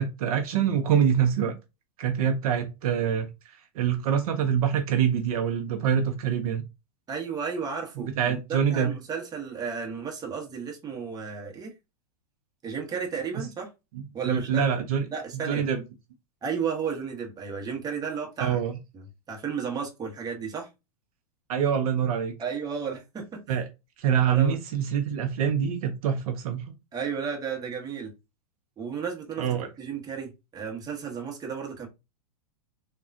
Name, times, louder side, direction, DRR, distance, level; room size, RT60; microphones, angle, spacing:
voice 1, 0.0-1.5 2.0-6.6 8.0-8.9 14.2-15.0 15.5-15.8 18.4-18.8 21.5-22.3 23.5-23.6 24.0-26.7 29.4-29.7, right 8 dB, 65° right, 0.6 m, -25 dB
voice 2, 7.1-11.7 12.6-13.7 14.1-14.7 15.1-15.6 16.4-18.6 18.9-20.7 22.4-23.4 24.3-24.6 26.9-28.1 28.8-29.5 29.8-31.9, right 6 dB, 20° right, 1.0 m, -33 dB
3.4 x 2.3 x 2.5 m
hypercardioid pair, 115°, 20 cm